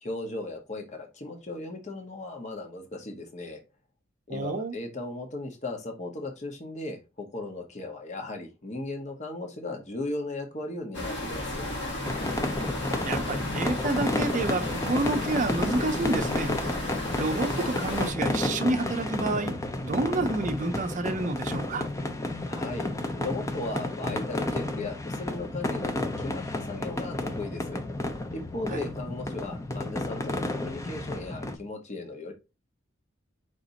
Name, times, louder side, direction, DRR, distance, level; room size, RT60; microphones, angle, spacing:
voice 1, 0.0-3.6 4.3-11.6 22.5-22.9 23.2-27.8 28.3-32.3, left 2 dB, 35° left, 0.8 m, -37 dB
voice 2, 4.3-4.8 13.0-16.5 17.2-19.5 19.8-21.9 28.7-28.8, right 2 dB, 40° right, 0.6 m, -29 dB
sound 1, 10.9-18.1, left 1 dB, 60° left, 1.4 m, -34 dB
sound 2, 12.0-31.5, left 1 dB, 15° left, 0.5 m, -32 dB
5.0 x 2.6 x 4.0 m
head